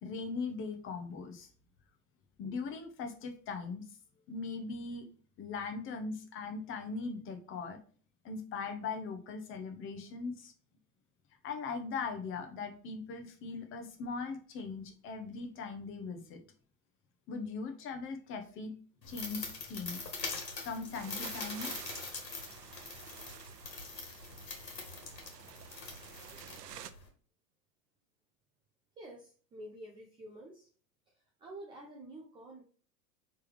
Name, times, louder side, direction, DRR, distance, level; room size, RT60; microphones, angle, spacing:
voice 1, 0.0-1.5 2.4-3.8 4.3-5.1 5.4-7.8 8.2-10.5 11.4-16.4 17.3-18.7 19.1-20.0 20.6-21.7, left 4 dB, 25° left, 6 dB, 0.9 m, -40 dB
sound 1, 19.0-27.1, left 4 dB, 75° left, 1.6 m, -43 dB
sound 2, 20.9-26.9, right 10 dB, 70° right, 0.6 m, -51 dB
voice 2, 29.0-30.7 31.1-32.6, right 1 dB, 10° right, -1 dB, 0.4 m, -49 dB
4.6 x 3.4 x 3.3 m, 0.43 s
figure-of-eight pair, 95°, 50 cm